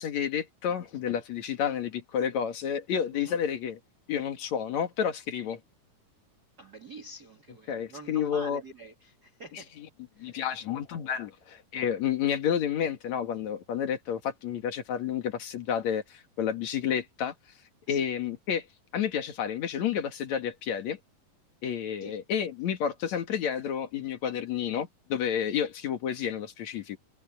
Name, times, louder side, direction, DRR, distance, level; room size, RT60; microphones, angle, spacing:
voice 1, 0.0-3.8 4.1-5.6 7.7-8.6 10.2-17.3 17.9-18.7 18.9-21.0 21.6-27.0, left 8 dB, 55° left, 2.8 m, -30 dB
voice 2, 6.6-9.8 10.2-10.4 17.9-18.1 22.0-22.2, right 2 dB, 30° right, 2.2 m, -46 dB
omnidirectional pair, 4.1 m